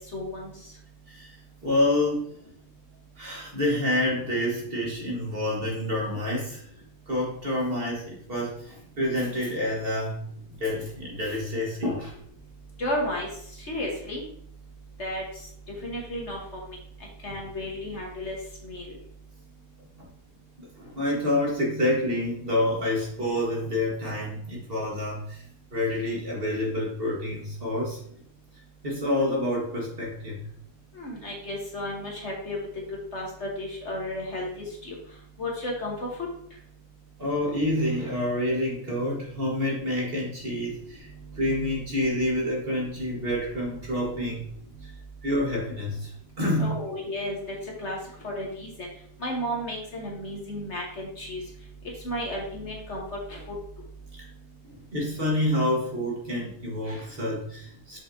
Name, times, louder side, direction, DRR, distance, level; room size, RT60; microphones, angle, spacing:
voice 1, 0.1-0.5 12.8-13.3 13.7-14.2 15.0-15.2 15.8-16.4 16.7-16.8 17.2-18.4 18.6-18.9 30.9-32.6 33.1-34.5 34.8-35.0 35.4-35.9 46.6-47.4 47.8-48.0 48.2-48.7 49.2-51.4 52.0-53.0 53.3-53.4, left 1 dB, 50° left, -2 dB, 1.7 m, -32 dB
voice 2, 1.6-2.4 3.2-6.6 7.1-12.1 20.0-20.1 20.6-25.4 25.7-28.0 28.8-30.4 37.2-41.1 41.4-44.5 44.8-44.9 45.2-46.7 54.6-58.0, left 1 dB, 40° right, -3 dB, 1.8 m, -28 dB
6.7 x 5.6 x 2.7 m, 0.63 s
omnidirectional pair, 1.5 m